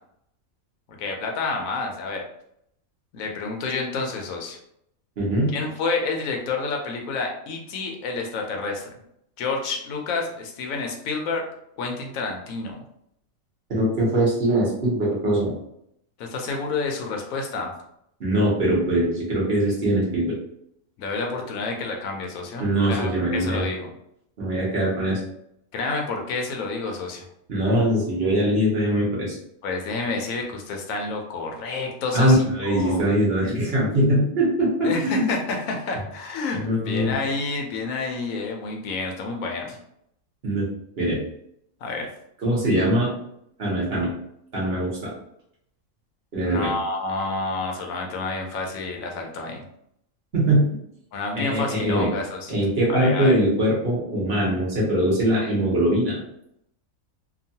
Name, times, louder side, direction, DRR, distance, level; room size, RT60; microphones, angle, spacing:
voice 1, 1.0-2.2 3.1-4.6 5.5-8.9 9.4-11.4 11.8-12.8 16.2-17.7 21.0-23.9 25.7-27.3 29.6-33.0 34.8-39.8 41.8-42.1 46.4-49.6 51.1-52.5 52.9-53.3, left 3 dB, 80° left, 2 dB, 1.0 m, -29 dB
voice 2, 5.2-5.5 13.7-15.5 18.2-20.4 22.6-23.7 24.4-25.2 27.5-29.4 32.1-35.2 36.6-37.1 40.4-40.6 41.0-41.2 42.4-43.1 43.6-44.1 44.5-45.1 46.3-46.7 50.3-50.6 51.4-52.1 52.5-56.2, right 1 dB, 50° right, -5 dB, 1.1 m, -22 dB
2.9 x 2.2 x 2.7 m, 0.74 s
omnidirectional pair, 1.4 m